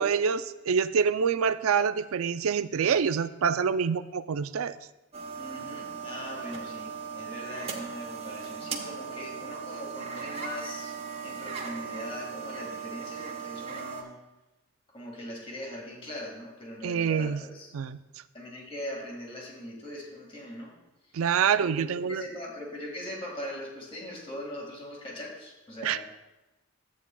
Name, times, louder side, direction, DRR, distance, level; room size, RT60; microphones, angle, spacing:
voice 1, 0.0-4.8 16.8-17.4 17.7-18.0 21.1-22.2 25.8-26.0, right 6 dB, 80° right, 13 dB, 0.4 m, -26 dB
sound 1, 5.1-14.0, right 6 dB, 30° right, 0.9 m, -38 dB
voice 2, 5.4-10.9 11.2-14.2 14.9-17.7 18.3-20.8 21.0-21.1 21.5-26.0, left 1 dB, 25° left, -2 dB, 1.8 m, -41 dB
13.5 x 8.4 x 2.3 m, 1.0 s
head